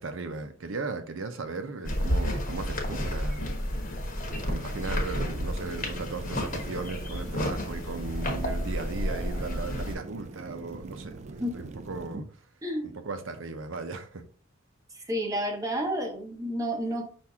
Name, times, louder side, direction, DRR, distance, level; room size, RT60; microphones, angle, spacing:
voice 1, 0.0-3.5 4.5-12.2 13.0-14.2, right 3 dB, 75° right, 0.7 m, -37 dB
sound 1, 1.8-10.0, equal, 45° left, 1.0 m, -31 dB
sound 2, 4.3-12.2, right 3 dB, 35° right, 0.3 m, -43 dB
voice 2, 12.6-13.0 14.9-17.1, equal, 15° right, 0.8 m, -30 dB
5.8 x 2.6 x 3.5 m
head